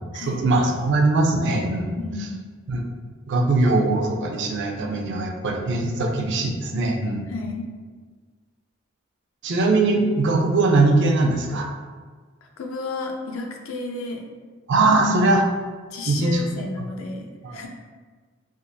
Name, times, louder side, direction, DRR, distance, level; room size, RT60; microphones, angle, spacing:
voice 1, 0.1-2.0 2.7-2.8 3.3-7.3 9.4-11.7 14.7-15.5 16.1-16.4 17.4-17.7, right 2 dB, 60° right, 2 dB, 0.4 m, -21 dB
voice 2, 2.0-2.5 7.3-7.7 12.6-14.2 15.9-17.7, left 3 dB, 75° left, 2 dB, 0.5 m, -32 dB
3.5 x 2.4 x 2.5 m, 1.5 s
head